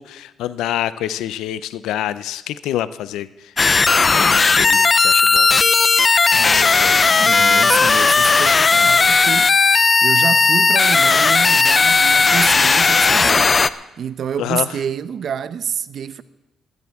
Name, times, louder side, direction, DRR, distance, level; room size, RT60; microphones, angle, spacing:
voice 1, 0.0-3.5 4.1-5.5 6.4-7.0 14.4-14.7, left 12 dB, 90° left, 0.5 m, -27 dB
sound 1, 3.6-13.7, left 4 dB, 30° left, 0.5 m, -15 dB
voice 2, 6.3-13.5 14.0-16.2, right 8 dB, 60° right, 0.7 m, -28 dB
20.0 x 13.5 x 3.5 m
cardioid pair, 90°, 0 cm